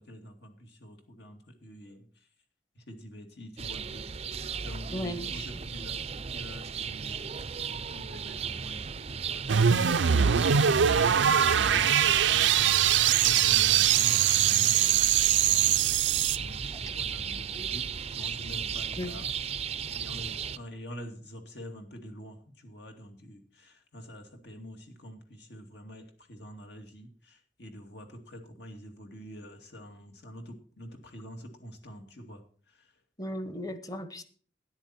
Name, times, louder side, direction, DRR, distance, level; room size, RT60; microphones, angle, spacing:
voice 1, 0.0-2.1 2.8-4.1 4.6-17.9 18.1-19.7 19.9-32.9, equal, 65° left, 4 dB, 2.6 m, -46 dB
sound 1, 3.6-20.6, right 6 dB, 35° right, 0.5 m, -35 dB
voice 2, 4.9-5.5 19.0-19.1 33.2-34.2, equal, 20° left, 11 dB, 1.3 m, -36 dB
sound 2, 9.5-16.4, right 9 dB, 85° right, 0.5 m, -22 dB
13.0 x 10.5 x 4.3 m, 0.43 s
head